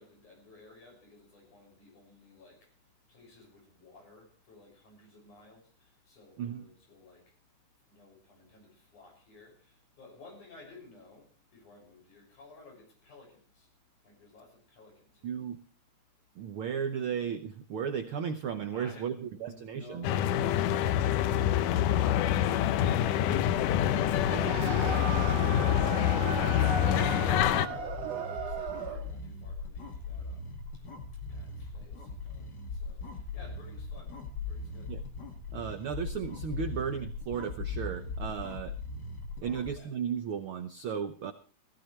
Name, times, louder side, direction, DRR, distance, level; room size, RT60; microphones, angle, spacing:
voice 1, 0.0-2.7 3.1-7.2 7.9-13.7 14.0-15.3 27.0-30.5 31.3-34.2 34.5-35.0 39.4-39.9, left 3 dB, 70° left, 8.0 m, -55 dB
voice 2, 15.2-15.6 16.3-20.1 34.9-35.0 35.5-38.7 39.4-41.3, right 7 dB, 85° right, 1.1 m, -35 dB
sound 1, 20.0-27.7, left 11 dB, 85° left, 2.4 m, -26 dB
sound 2, 24.2-29.1, right 5 dB, 60° right, 2.5 m, -36 dB
sound 3, 26.5-39.7, left 3 dB, 35° left, 2.2 m, -40 dB
17.0 x 15.5 x 3.2 m
omnidirectional pair, 3.6 m